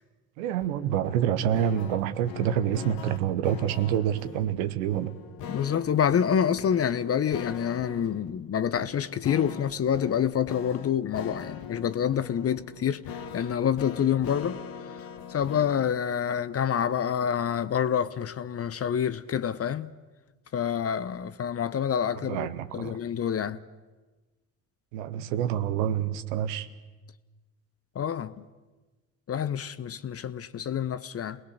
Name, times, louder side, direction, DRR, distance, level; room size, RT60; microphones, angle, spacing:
voice 1, 0.4-5.1 22.3-23.0 24.9-26.7, right 10 dB, 70° right, 1.1 m, -27 dB
sound 1, 0.6-15.9, left 8 dB, 60° left, 1.7 m, -42 dB
voice 2, 5.5-14.6 15.3-19.9 20.5-22.5 22.7-23.6 27.9-28.5 29.3-31.4, left 8 dB, 35° left, 0.9 m, -27 dB
28.0 x 19.5 x 6.6 m
hypercardioid pair, 55°, 40 cm